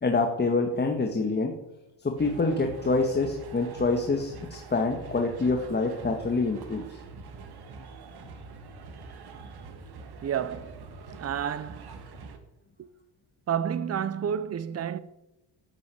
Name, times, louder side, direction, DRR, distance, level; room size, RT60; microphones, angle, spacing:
voice 1, 0.0-1.5 2.0-7.0, left 3 dB, 25° left, 1.7 m, -26 dB
sound 1, 2.2-12.4, right 4 dB, 60° right, 2.2 m, -44 dB
voice 2, 10.2-10.9 11.2-11.9 12.8-12.9 13.5-15.0, right 8 dB, 35° right, 0.8 m, -30 dB
13.5 x 9.6 x 8.4 m
cardioid pair, 135°, 43 cm